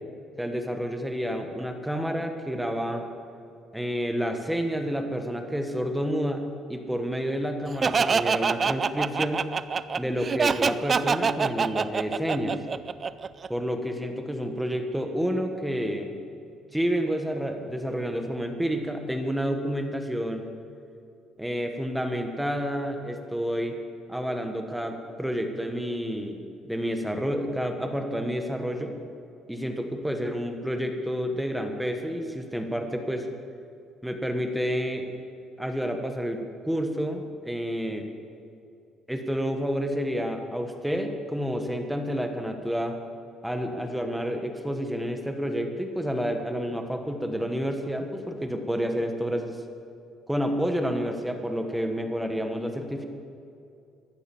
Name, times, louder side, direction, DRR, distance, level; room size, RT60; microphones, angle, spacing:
voice 1, 0.4-3.0 3.7-6.4 6.7-9.5 10.0-12.6 13.5-16.1 16.7-20.5 21.4-23.8 24.1-26.4 26.6-28.9 29.5-33.3 34.0-35.1 35.6-38.1 39.1-43.0 43.4-49.6 50.3-53.1, equal, 5° right, 5 dB, 1.3 m, -29 dB
Laughter, 7.8-13.5, right 5 dB, 25° right, 0.4 m, -25 dB
15.0 x 11.0 x 7.2 m, 2.6 s
cardioid pair, 155°, 0 cm